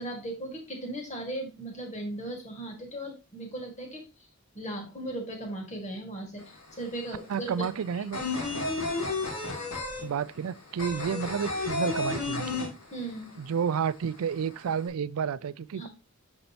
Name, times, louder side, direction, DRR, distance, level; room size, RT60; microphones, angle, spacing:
voice 1, 0.0-4.0 4.5-7.5 12.9-13.4 15.8-15.9, right 1 dB, 35° left, 1.9 m, -37 dB
sound 1, 6.4-6.5 6.7-13.3 13.6-13.7 14.0-14.8, left 3 dB, 80° left, 2.7 m, -32 dB
voice 2, 7.3-8.2 10.0-12.6 13.4-15.9, right 7 dB, 85° right, 0.4 m, -30 dB
6.8 x 5.3 x 2.9 m
head